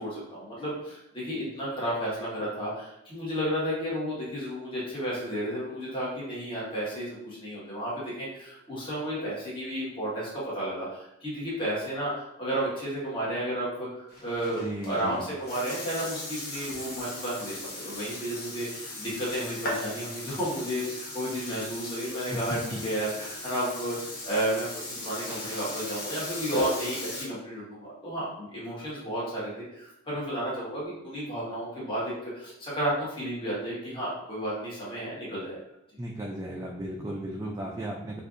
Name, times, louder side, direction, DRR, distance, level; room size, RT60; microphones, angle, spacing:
voice 1, 0.0-24.0 24.2-35.6, right 1 dB, 25° left, -7 dB, 1.1 m, -32 dB
Burping eructation, 14.1-27.2, left 1 dB, 45° left, 1.0 m, -38 dB
voice 2, 14.6-15.2 22.3-22.8 36.0-38.2, right 1 dB, 15° right, -2 dB, 0.3 m, -35 dB
4.2 x 2.4 x 2.6 m, 0.82 s
head